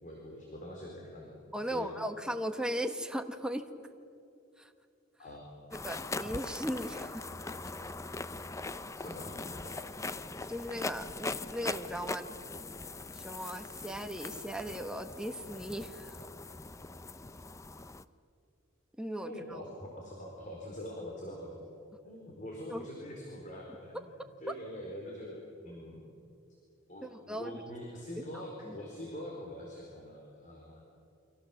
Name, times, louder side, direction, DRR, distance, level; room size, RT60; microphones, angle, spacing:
voice 1, 0.0-1.3 1.6-2.0 5.2-5.5 8.9-9.7 19.2-21.7 22.0-26.0 26.9-30.8, equal, 40° left, -1 dB, 4.5 m, -44 dB
voice 2, 1.5-3.7 4.6-4.7 5.7-7.3 10.5-12.3 13.1-16.1 19.0-19.6 22.7-22.8 27.0-27.5 28.3-28.7, equal, 5° right, 6 dB, 1.3 m, -37 dB
sound 1, 5.7-18.0, left 3 dB, 15° left, 0.6 m, -41 dB
29.5 x 24.5 x 7.3 m, 2.6 s
head